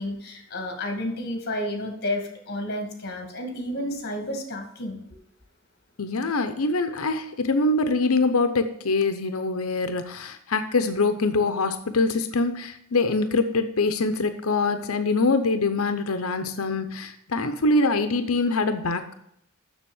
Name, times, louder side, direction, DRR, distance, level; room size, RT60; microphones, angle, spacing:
voice 1, 0.0-5.0, left 1 dB, 50° left, 4 dB, 2.3 m, -31 dB
voice 2, 6.0-19.1, left 3 dB, 80° left, 9 dB, 0.8 m, -24 dB
7.2 x 6.9 x 7.2 m, 0.76 s
head